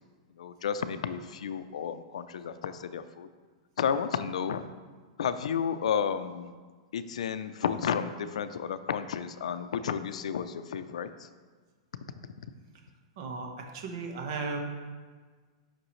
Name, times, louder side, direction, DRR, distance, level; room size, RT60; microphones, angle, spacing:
voice 1, 0.4-3.3 3.8-4.6 5.2-6.5 6.9-11.1, left 7 dB, 90° left, 11 dB, 0.4 m, -32 dB
voice 2, 13.2-14.6, right 4 dB, 45° right, 3 dB, 1.2 m, -36 dB
8.8 x 5.9 x 3.2 m, 1.5 s
supercardioid pair, 165°, 3 cm